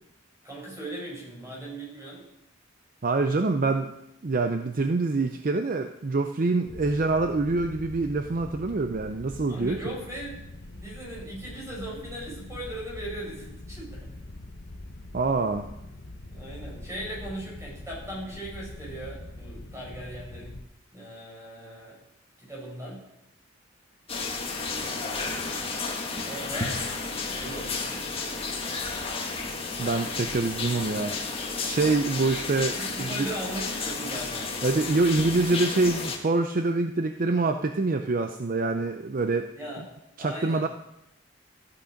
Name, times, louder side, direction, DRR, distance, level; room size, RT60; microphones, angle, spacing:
voice 1, 0.4-2.2 9.5-14.1 16.3-20.6 20.9-22.0 22.4-23.0 24.5-26.8 27.3-28.5 32.8-34.5 39.6-39.8 40.2-40.7, right 1 dB, 15° right, -3 dB, 4.9 m, -39 dB
voice 2, 3.0-3.9 4.2-9.8 15.1-15.6 29.8-31.1 31.6-33.3 34.6-39.5 40.2-40.7, right 3 dB, 45° right, 7 dB, 0.5 m, -25 dB
sound 1, 6.7-20.7, left 2 dB, 55° left, 0.9 m, -43 dB
sound 2, 24.1-36.2, left 4 dB, 30° left, 1.4 m, -32 dB
14.0 x 8.5 x 5.1 m, 0.86 s
head